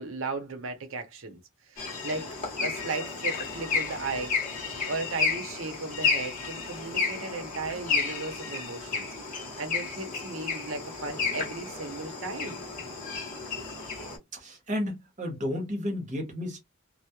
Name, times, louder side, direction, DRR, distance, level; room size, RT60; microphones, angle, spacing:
voice 1, 0.0-1.4 1.7-2.3 2.6-4.4 4.9-9.1 9.6-12.6 13.1-13.2 13.5-13.6, right 3 dB, 65° right, 0.7 m, -36 dB
sound 1, 1.8-14.2, left 4 dB, 40° left, 0.9 m, -32 dB
voice 2, 14.3-16.6, left 1 dB, 35° right, 0.9 m, -32 dB
2.3 x 2.0 x 2.8 m
head